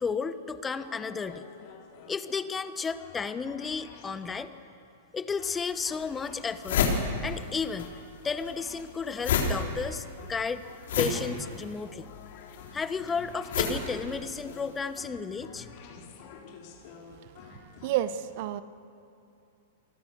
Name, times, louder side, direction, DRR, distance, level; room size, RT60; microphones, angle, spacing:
voice 1, 0.0-1.5 2.1-4.5 5.1-6.8 7.2-7.9 8.2-10.6 11.0-12.1 12.7-15.7, left 5 dB, 15° left, 11 dB, 1.3 m, -33 dB
sound 1, 0.8-4.7 5.4-7.1 7.8-9.5 10.2-17.9, left 6 dB, 50° left, 4.1 m, -50 dB
sound 2, 5.4-5.5 6.0-6.1 6.3-14.7, left 5 dB, 65° left, 3.7 m, -30 dB
voice 2, 17.8-18.6, right 12 dB, 55° right, 13 dB, 1.0 m, -29 dB
29.0 x 20.0 x 6.7 m, 2.6 s
hypercardioid pair, 110°, 0 cm